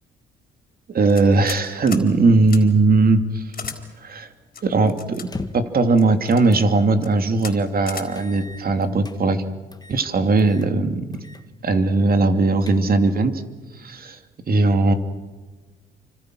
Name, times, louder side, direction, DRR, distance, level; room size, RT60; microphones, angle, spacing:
voice 1, 0.9-3.4 4.0-4.3 4.6-5.3 5.5-9.4 9.9-11.0 11.6-13.3 13.8-14.2 14.5-14.9, right 3 dB, 50° right, 8 dB, 2.7 m, -18 dB
sound 1, 1.1-1.6 1.9-2.1 2.5-2.6 3.5-3.8 4.5-5.3 6.0-6.4 6.9-7.1 7.4-7.5 7.9-8.1, left 6 dB, 45° left, 4.2 m, -34 dB
sound 2, 5.2-5.8 6.5-6.7 7.1-7.2 8.1-9.2 9.7-10.1 10.4-10.7 11.1-11.5 11.8-11.9 12.4-13.1, left 3 dB, 20° left, 1.8 m, -38 dB
29.5 x 25.5 x 6.3 m, 1.3 s
cardioid pair, 90°, 20 cm